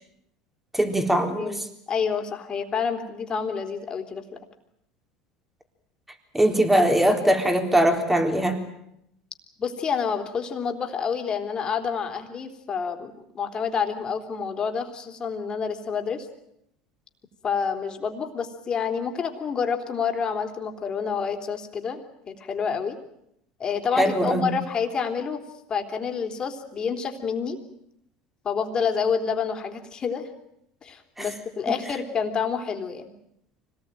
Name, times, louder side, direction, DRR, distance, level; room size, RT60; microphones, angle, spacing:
voice 1, 0.7-1.5 6.3-8.6 24.0-24.5 31.2-31.3, right 1 dB, 5° right, 5 dB, 3.9 m, -21 dB
voice 2, 1.9-4.4 9.6-16.3 17.4-23.0 23.6-25.4 25.7-27.6 28.4-30.2 30.8-33.1, left 6 dB, 30° left, 5 dB, 3.5 m, -28 dB
25.0 x 19.0 x 9.1 m, 0.78 s
supercardioid pair, 95°, 3 cm